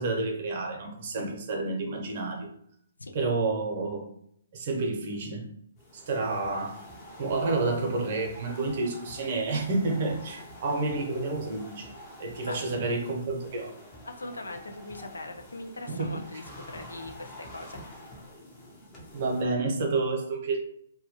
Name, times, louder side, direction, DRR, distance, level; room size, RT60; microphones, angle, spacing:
voice 1, 0.0-2.5 3.1-4.1 4.5-5.5 5.9-6.8 7.2-11.9 12.2-13.7 15.9-16.2 19.1-20.6, right 3 dB, 50° right, 2 dB, 0.7 m, -29 dB
sound 1, 5.8-19.4, left 1 dB, 25° left, 0.7 m, -47 dB
voice 2, 14.0-17.8, left 2 dB, 85° left, 5 dB, 0.4 m, -40 dB
2.2 x 2.1 x 2.9 m, 0.70 s
hypercardioid pair, 135°, 0 cm